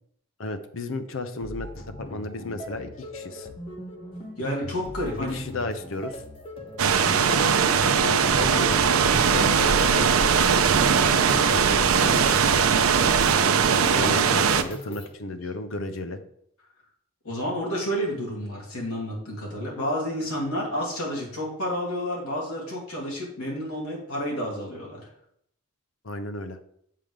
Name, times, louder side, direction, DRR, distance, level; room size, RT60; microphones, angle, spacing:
voice 1, 0.4-3.5 5.2-6.2 7.2-8.8 9.3-12.7 13.7-16.2 26.0-26.6, left 2 dB, 65° left, 9 dB, 0.7 m, -34 dB
sound 1, 1.4-15.1, equal, 25° left, 0.9 m, -39 dB
voice 2, 4.4-5.4 7.1-7.5 14.0-14.1 17.2-25.0, equal, 90° left, -2 dB, 2.6 m, -30 dB
sound 2, 6.8-14.6, right 6 dB, 75° right, 0.5 m, -20 dB
7.5 x 3.5 x 6.5 m, 0.70 s
head